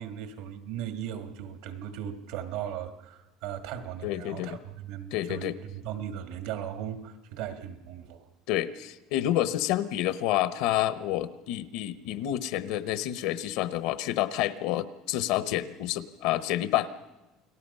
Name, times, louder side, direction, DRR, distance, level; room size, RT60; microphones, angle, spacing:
voice 1, 0.0-8.3, right 10 dB, 75° right, 8 dB, 1.9 m, -37 dB
voice 2, 4.0-4.6 5.1-5.6 8.5-16.9, left 13 dB, 70° left, 13 dB, 0.9 m, -29 dB
29.0 x 19.0 x 5.6 m, 1.0 s
cardioid pair, 170°, 0 cm